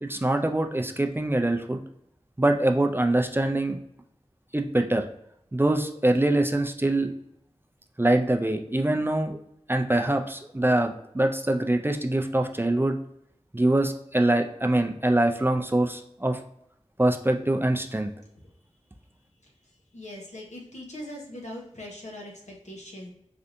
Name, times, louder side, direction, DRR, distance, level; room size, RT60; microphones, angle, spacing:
voice 1, 0.0-1.8 2.4-3.8 4.5-5.0 5.5-7.1 8.0-9.4 9.7-13.0 13.5-16.4 17.0-18.1, right 1 dB, 20° right, 4 dB, 0.3 m, -24 dB
voice 2, 19.9-23.1, left 1 dB, 80° left, -1 dB, 0.8 m, -41 dB
3.3 x 2.6 x 2.5 m, 0.76 s
wide cardioid pair, 45°, 12 cm